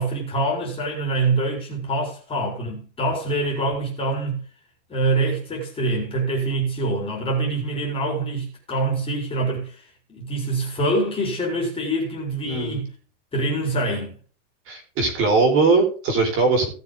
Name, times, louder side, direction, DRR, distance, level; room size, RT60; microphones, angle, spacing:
voice 1, 0.0-4.4 4.9-12.9 13.3-14.2, right 2 dB, 15° left, 4.4 m, -25 dB
voice 2, 12.4-12.8 14.7-16.7, right 3 dB, 35° right, 4.5 m, -20 dB
18.0 x 6.9 x 3.8 m
supercardioid pair, 165°, 38 cm